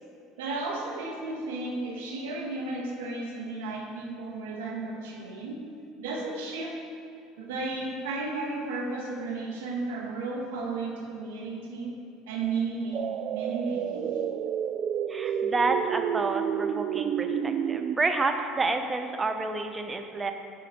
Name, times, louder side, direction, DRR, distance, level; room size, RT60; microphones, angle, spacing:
voice 1, 0.4-5.6 6.0-6.7 7.4-12.0 12.3-14.2, right 3 dB, 85° right, -1 dB, 1.6 m, -33 dB
sound 1, 12.9-18.0, right 9 dB, 50° right, 0.3 m, -30 dB
voice 2, 15.1-20.3, right 3 dB, 20° right, 6 dB, 0.8 m, -29 dB
10.5 x 4.1 x 6.3 m, 2.5 s
supercardioid pair, 95°, 0 cm